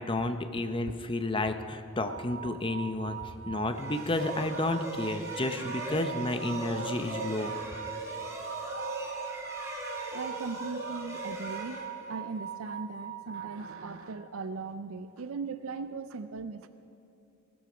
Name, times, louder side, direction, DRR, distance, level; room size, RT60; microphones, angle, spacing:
voice 1, 0.0-3.2 3.5-7.5, left 2 dB, 25° left, 8 dB, 0.7 m, -31 dB
sound 1, 2.0-14.2, right 9 dB, 55° right, 0.9 m, -42 dB
sound 2, 3.7-12.4, right 1 dB, 15° right, 2.5 m, -39 dB
voice 2, 10.1-16.7, right 4 dB, 75° right, 11 dB, 0.5 m, -39 dB
17.0 x 12.5 x 5.1 m, 2.9 s
head